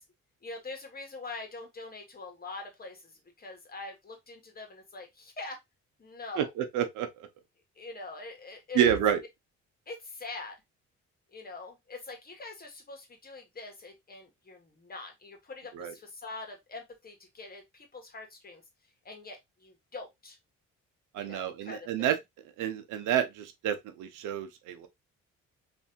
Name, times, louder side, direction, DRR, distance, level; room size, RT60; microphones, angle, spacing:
voice 1, 0.4-5.6 6.0-6.5 7.8-9.0 9.9-10.5 11.3-18.6 19.0-20.4 21.2-22.1, left 3 dB, 30° left, 1.3 m, -44 dB
voice 2, 6.4-7.1 8.7-9.2 15.7-15.9 21.1-22.2 22.6-24.9, right 9 dB, 90° right, 0.7 m, -29 dB
3.2 x 2.7 x 2.7 m
cardioid pair, 90°, 30 cm